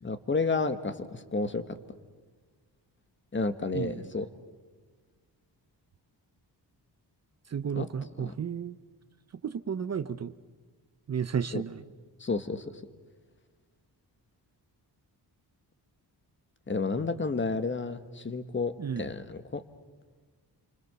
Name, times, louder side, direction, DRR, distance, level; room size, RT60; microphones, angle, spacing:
voice 1, 0.0-1.8 3.3-4.3 7.7-7.9 8.2-8.3 11.5-11.6 12.2-12.6 16.7-19.6, left 4 dB, 25° left, 11 dB, 1.4 m, -31 dB
voice 2, 7.5-8.8 9.4-10.3 11.1-11.8 18.8-19.0, right 7 dB, 40° right, 13 dB, 0.7 m, -32 dB
28.0 x 25.0 x 6.9 m, 1.5 s
wide cardioid pair, 130°, 42 cm